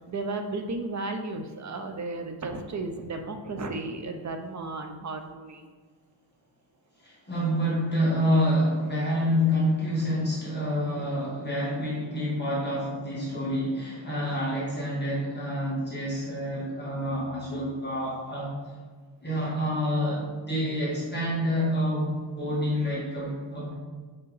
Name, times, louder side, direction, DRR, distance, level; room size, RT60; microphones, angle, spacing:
voice 1, 0.0-5.6, right 3 dB, 35° right, 6 dB, 0.5 m, -34 dB
voice 2, 7.0-18.5 19.2-23.7, equal, 20° left, -7 dB, 1.6 m, -28 dB
5.5 x 5.5 x 4.0 m, 1.5 s
wide cardioid pair, 155°, 50 cm